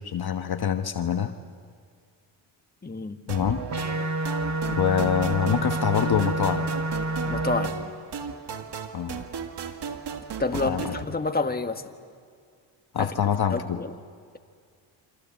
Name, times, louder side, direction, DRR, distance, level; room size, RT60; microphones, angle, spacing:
voice 1, 0.0-1.3 3.3-3.6 4.7-6.7 8.9-9.2 10.6-10.8 12.9-13.8, left 8 dB, 55° left, 7 dB, 1.3 m, -25 dB
voice 2, 2.8-3.2 7.3-7.8 10.4-11.8 13.0-13.1 13.5-13.9, left 3 dB, 20° left, 6 dB, 1.7 m, -28 dB
sound 1, 3.3-11.0, right 6 dB, 60° right, 2.0 m, -36 dB
sound 2, 3.7-7.7, right 2 dB, 35° right, 1.8 m, -28 dB
28.5 x 25.5 x 7.5 m, 2.1 s
supercardioid pair, 60°, 46 cm